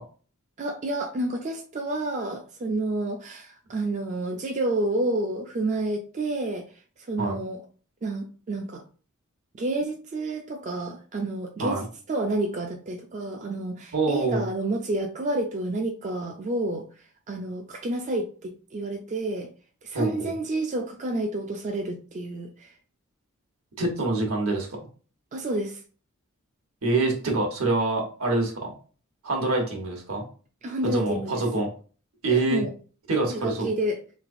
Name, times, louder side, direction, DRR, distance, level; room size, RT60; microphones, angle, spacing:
voice 1, 0.6-6.7 7.1-7.6 8.0-8.8 9.5-16.9 17.3-19.5 19.8-22.7 25.3-25.8 30.6-31.4 32.3-32.7 33.3-34.0, right 2 dB, 35° right, 2 dB, 0.4 m, -29 dB
voice 2, 13.9-14.5 19.9-20.3 23.8-24.9 26.8-28.7 29.2-30.2 30.8-31.7 32.2-32.6 33.1-33.7, right 2 dB, 75° right, 1 dB, 1.1 m, -25 dB
3.3 x 3.2 x 2.5 m, 0.39 s
head